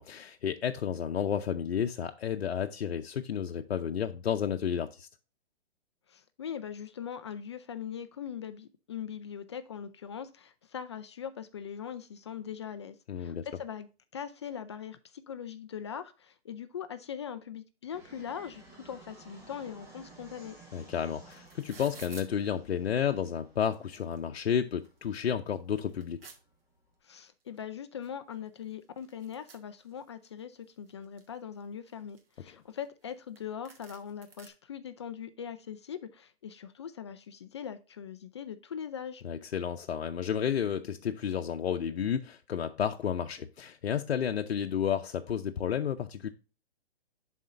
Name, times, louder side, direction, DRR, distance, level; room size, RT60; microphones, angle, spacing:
voice 1, 0.0-5.1 13.1-13.4 20.7-26.2 39.2-46.3, left 8 dB, 90° left, 0.7 m, -31 dB
voice 2, 6.1-20.6 27.0-39.2, left 8 dB, 30° left, 0.4 m, -41 dB
Fixed-wing aircraft airplane, 17.9-26.9, right 3 dB, 10° right, 1.6 m, -56 dB
sound 1, 20.8-20.9 21.0-22.3 23.1-23.2 23.6-24.4 24.8-24.9 25.3-26.4 27.6-27.7 28.0-28.1 28.3-30.3 30.7-31.4 31.9-33.1 33.4-33.5 33.7-34.5, right 5 dB, 65° right, 2.0 m, -52 dB
11.0 x 4.3 x 2.5 m
hypercardioid pair, 155°, 31 cm